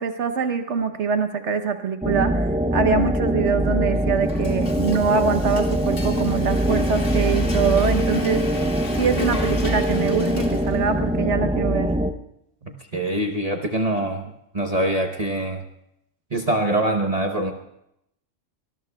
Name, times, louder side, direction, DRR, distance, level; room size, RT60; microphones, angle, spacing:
voice 1, 0.0-8.4 9.0-11.9, right 6 dB, 70° right, 7 dB, 1.1 m, -23 dB
sound 1, 2.0-12.1, equal, 10° right, 0.4 m, -23 dB
Frying (food), 3.9-11.0, left 3 dB, 80° left, 2.4 m, -37 dB
voice 2, 12.6-14.2 14.5-15.6 16.3-17.5, right 1 dB, 35° right, 3 dB, 1.0 m, -24 dB
24.0 x 20.0 x 2.3 m, 0.78 s
omnidirectional pair, 1.3 m